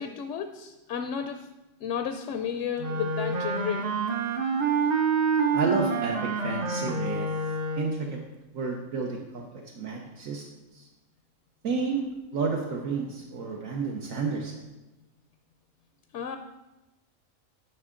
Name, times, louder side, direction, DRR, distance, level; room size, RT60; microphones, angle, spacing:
voice 1, 0.0-1.5 1.8-3.9 16.1-16.4, left 7 dB, 70° left, 6 dB, 0.8 m, -32 dB
Wind instrument woodwind instrument, 2.8-8.1, right 4 dB, 45° right, 0.6 m, -27 dB
voice 2, 5.5-7.3 7.8-8.2 8.5-10.4 10.7-10.9 11.6-12.0 12.3-14.6, right 4 dB, 75° right, -1 dB, 1.3 m, -31 dB
10.5 x 5.6 x 3.7 m, 1.0 s
omnidirectional pair, 1.4 m